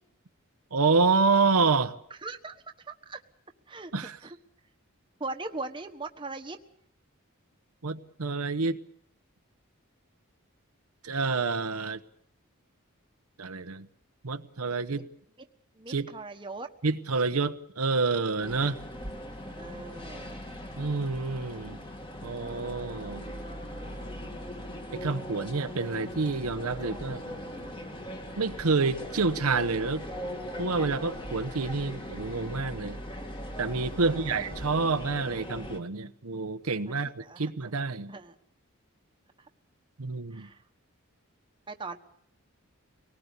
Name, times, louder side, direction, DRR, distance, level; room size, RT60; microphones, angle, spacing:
voice 1, 0.7-2.0 3.9-4.2 7.8-8.8 11.0-12.0 13.4-13.9 14.2-15.0 15.9-16.1 16.8-18.8 20.8-21.8 22.2-23.3 24.9-27.2 28.4-30.0 30.6-33.0 33.6-38.1 40.0-40.5, right 4 dB, 90° right, 9 dB, 1.0 m, -28 dB
voice 2, 2.1-2.6 2.8-3.2 3.7-4.4 5.2-6.6 15.7-16.7 18.5-18.7 19.2-20.4 34.0-34.3 36.9-37.7 38.1-38.3 39.4-39.5 40.3-40.6 41.7-42.0, right 3 dB, 20° right, 5 dB, 1.3 m, -40 dB
sound 1, 18.4-35.8, equal, 20° left, 2.2 m, -40 dB
24.0 x 19.0 x 8.2 m, 0.68 s
head